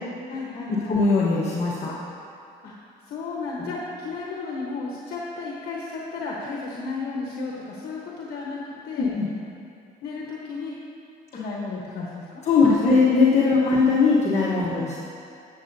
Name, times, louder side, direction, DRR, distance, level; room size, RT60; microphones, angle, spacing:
voice 1, 0.3-1.0 2.6-2.7 3.1-9.1 10.0-10.7 11.3-13.1 14.7-14.9, left 3 dB, 65° left, -3 dB, 1.1 m, -33 dB
voice 2, 0.9-1.9 3.6-3.7 9.0-9.3 12.5-15.0, left 4 dB, 40° left, -6 dB, 1.2 m, -20 dB
12.0 x 7.5 x 2.7 m, 2.5 s
cardioid pair, 110°, 17 cm